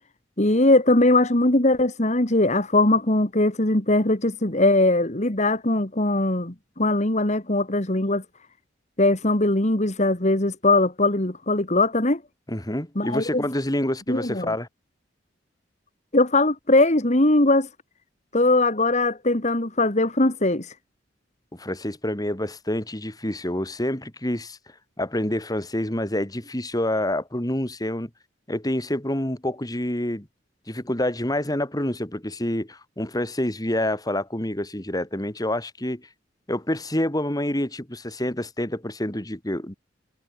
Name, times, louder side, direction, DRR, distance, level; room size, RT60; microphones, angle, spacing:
voice 1, 0.4-8.2 9.0-12.2 13.0-13.4 14.1-14.5 16.1-17.7 18.3-20.7, left 2 dB, 40° left, 2.5 m, -20 dB
voice 2, 12.5-14.7 21.5-24.6 25.0-28.1 28.5-30.3 30.7-36.1 36.5-39.7, left 1 dB, 20° left, 3.1 m, -27 dB
head